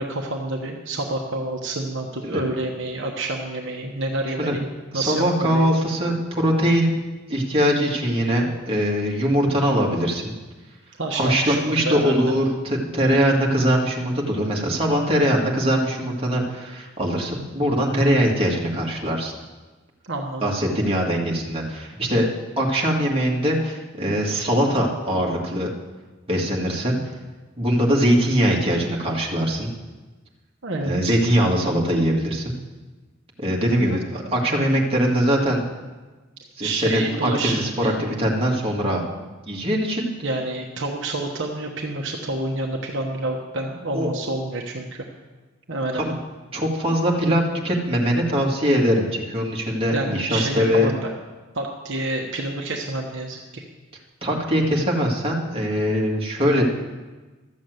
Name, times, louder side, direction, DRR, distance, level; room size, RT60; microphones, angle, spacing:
voice 1, 0.0-5.7 11.0-12.3 20.1-20.5 30.6-31.2 34.3-34.4 36.6-38.0 40.2-45.0 45.7-46.1 49.9-51.1 51.5-53.6, right 2 dB, 60° right, 1 dB, 1.2 m, -28 dB
voice 2, 4.9-6.9 7.3-10.3 11.1-19.3 20.4-22.3 22.6-25.7 26.3-27.0 27.6-29.7 30.8-32.5 33.4-35.6 36.6-39.0 39.5-40.1 43.9-44.1 45.9-46.2 46.5-50.9 54.2-56.6, equal, 30° right, -2 dB, 2.0 m, -22 dB
13.0 x 7.2 x 7.9 m, 1.3 s
head